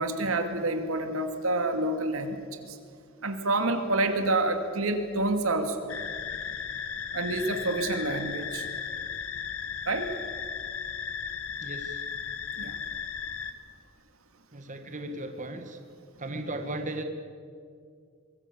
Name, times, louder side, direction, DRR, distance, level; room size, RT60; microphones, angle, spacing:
voice 1, 0.0-2.8 3.2-5.9 7.1-8.7 9.9-10.1 12.6-12.8, right 2 dB, 85° right, 6 dB, 2.4 m, -28 dB
sound 1, 5.9-13.5, left 7 dB, 75° left, 1.4 m, -36 dB
voice 2, 11.6-12.0 14.5-15.8 16.2-17.0, right 1 dB, 40° right, 5 dB, 1.9 m, -36 dB
24.5 x 22.0 x 7.1 m, 2.2 s
head